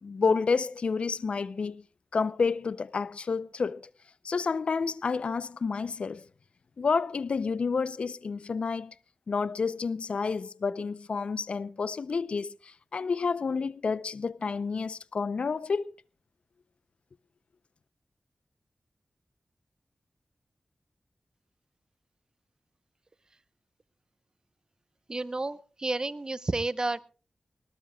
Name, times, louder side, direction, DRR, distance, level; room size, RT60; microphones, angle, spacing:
voice 1, 0.0-1.8 2.1-3.9 4.2-6.2 6.8-8.9 9.3-15.9, left 5 dB, 75° left, 0.6 m, -30 dB
voice 2, 25.1-27.1, right 2 dB, 40° right, 0.8 m, -31 dB
20.5 x 19.0 x 2.3 m
cardioid pair, 55°, 2 cm